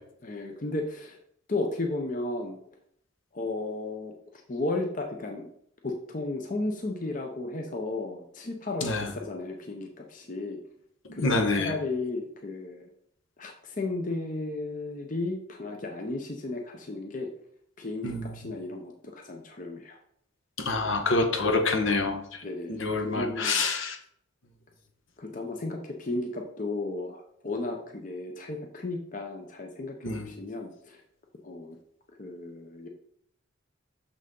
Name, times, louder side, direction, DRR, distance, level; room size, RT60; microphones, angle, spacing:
voice 1, 0.2-1.2 1.5-2.6 3.3-5.5 5.8-10.6 11.1-12.9 13.4-17.3 17.8-20.0 22.4-23.6 25.2-31.0 31.4-31.8 32.2-32.9, left 2 dB, 40° left, 3 dB, 0.7 m, -34 dB
voice 2, 11.2-11.7 18.0-18.2 20.6-22.4 22.7-24.0 30.0-30.3, left 3 dB, 75° left, 4 dB, 1.2 m, -27 dB
6.6 x 6.1 x 3.8 m, 0.70 s
head